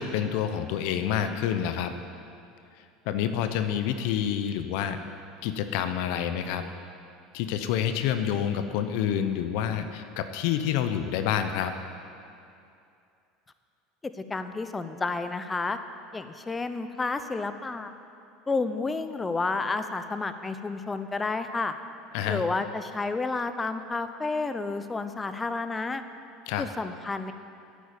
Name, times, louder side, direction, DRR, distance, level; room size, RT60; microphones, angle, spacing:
voice 1, 0.0-1.9 3.1-5.0 5.4-6.6 7.3-11.7 22.1-22.4 26.5-26.7, left 9 dB, 70° left, 9 dB, 0.7 m, -28 dB
voice 2, 14.3-15.8 16.1-17.9 18.5-21.7 22.3-26.0 26.6-27.3, left 3 dB, 20° left, 10 dB, 0.8 m, -30 dB
9.2 x 8.5 x 9.0 m, 2.5 s
hypercardioid pair, 90°, 0 cm